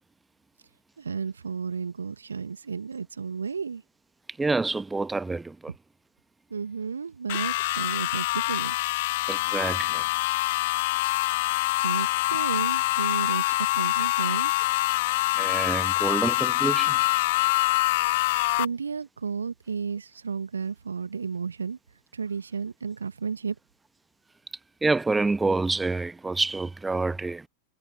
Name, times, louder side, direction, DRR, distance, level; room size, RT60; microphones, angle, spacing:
voice 1, 1.0-3.8 6.5-8.8 11.8-14.5 18.6-21.8 22.1-23.6, right 5 dB, 75° right, 1.5 m, -32 dB
voice 2, 4.4-5.7 9.3-10.1 15.3-17.0 24.8-27.5, right 3 dB, 10° right, 1.4 m, -27 dB
sound 1, 7.3-18.6, left 19 dB, 50° left, 1.8 m, -25 dB
figure-of-eight pair, 90°, 0 cm